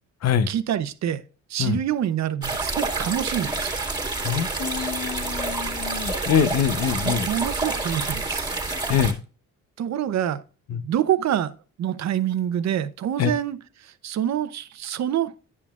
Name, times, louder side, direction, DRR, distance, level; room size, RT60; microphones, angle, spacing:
voice 1, 0.5-1.2 1.5-3.8 7.0-8.5 9.8-10.4 10.7-15.3, right 10 dB, 65° right, 0.8 m, -26 dB
sound 1, 2.4-9.1, right 3 dB, 15° right, 2.2 m, -28 dB
voice 2, 4.2-7.3 8.9-9.2 10.7-10.8 13.2-13.3, left 8 dB, 55° left, 0.8 m, -24 dB
9.8 x 6.9 x 2.4 m
cardioid pair, 90°, 30 cm